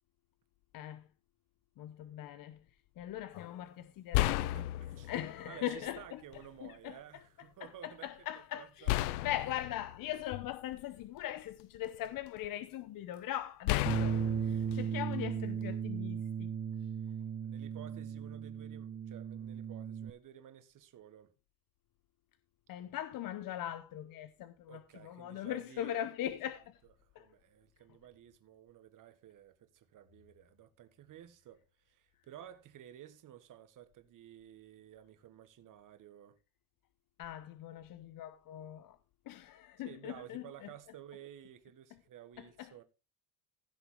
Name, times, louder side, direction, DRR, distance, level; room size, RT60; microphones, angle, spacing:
voice 1, 0.7-1.1 1.8-2.7 3.0-4.5 5.1-6.2 6.6-6.9 7.6-16.5 22.7-26.8 27.1-27.3 37.2-39.0 39.3-40.7 42.4-42.7, left 12 dB, 50° left, 0.9 m, -41 dB
sound 1, 3.3-3.5 4.1-5.4 6.3-6.4 8.9-11.0 11.6-12.5 13.7-15.7, left 17 dB, 85° left, 0.6 m, -34 dB
voice 2, 4.2-5.1 5.5-8.1 8.5-9.4 17.0-17.2 17.4-21.3 24.7-26.0 27.0-36.4 39.8-42.8, right 11 dB, 45° right, 1.6 m, -53 dB
Bass guitar, 13.9-20.1, right 7 dB, 25° right, 0.6 m, -36 dB
16.0 x 6.0 x 3.7 m
supercardioid pair, 90°, 44 cm